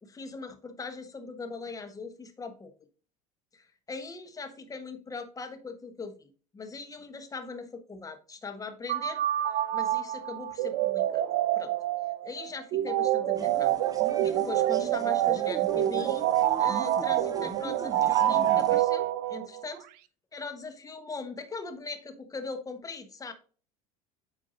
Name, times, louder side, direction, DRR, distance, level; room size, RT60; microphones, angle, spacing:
voice 1, 0.0-2.7 3.5-9.2 9.7-11.2 11.5-11.7 12.2-13.8 14.2-16.3 16.6-19.9 20.3-23.3, left 4 dB, 20° left, 7 dB, 1.1 m, -40 dB
sound 1, 8.9-19.6, right 13 dB, 55° right, 0.5 m, -27 dB
sound 2, 13.3-18.8, right 4 dB, 20° right, 0.9 m, -41 dB
8.6 x 4.6 x 2.6 m, 0.39 s
hypercardioid pair, 75°, 19 cm